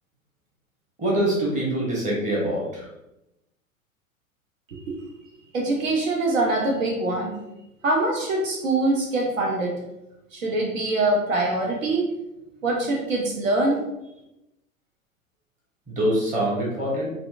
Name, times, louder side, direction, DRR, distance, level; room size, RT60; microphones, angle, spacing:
voice 1, 1.0-2.9 15.9-17.1, right 1 dB, 15° right, -4 dB, 1.1 m, -24 dB
voice 2, 5.5-7.4 7.8-9.7 10.3-12.1 12.6-13.8, right 2 dB, 65° right, 0 dB, 0.8 m, -24 dB
4.2 x 2.4 x 2.4 m, 0.90 s
figure-of-eight pair, 90°, 42 cm